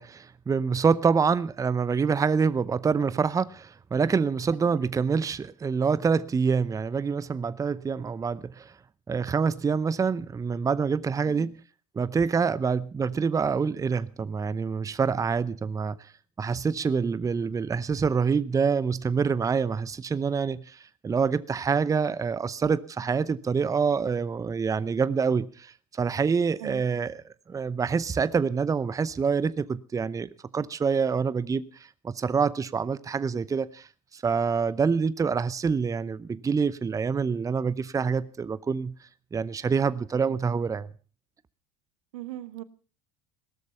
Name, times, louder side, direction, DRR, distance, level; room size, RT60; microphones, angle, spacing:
voice 1, 0.0-8.7 9.1-11.5 12.0-16.1 16.4-31.7 32.0-33.9 34.1-38.9 39.3-40.9, right 5 dB, 20° right, 0.7 m, -26 dB
voice 2, 42.1-42.6, right 14 dB, 75° right, 1.1 m, -39 dB
17.5 x 13.0 x 5.5 m
hypercardioid pair, 75°, 18 cm